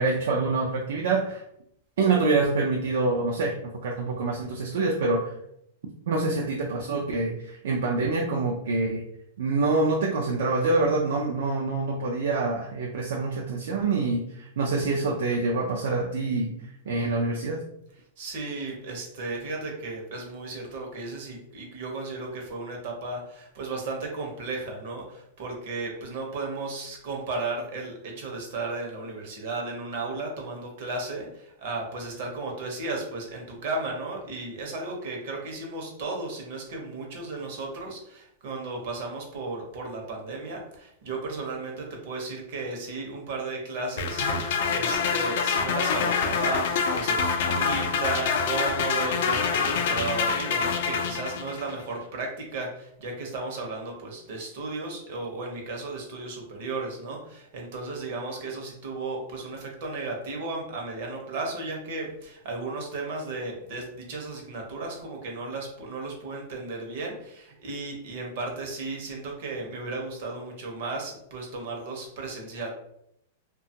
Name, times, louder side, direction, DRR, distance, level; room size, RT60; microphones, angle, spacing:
voice 1, 0.0-1.4 2.0-5.3 6.1-9.0 9.4-16.5 16.9-17.6, right 3 dB, 75° right, 0 dB, 0.4 m, -26 dB
voice 2, 18.2-72.7, right 3 dB, 50° right, 1 dB, 0.8 m, -34 dB
sound 1, 44.0-51.7, left 5 dB, 55° left, 0.3 m, -26 dB
2.8 x 2.3 x 2.7 m, 0.75 s
supercardioid pair, 165°, 0 cm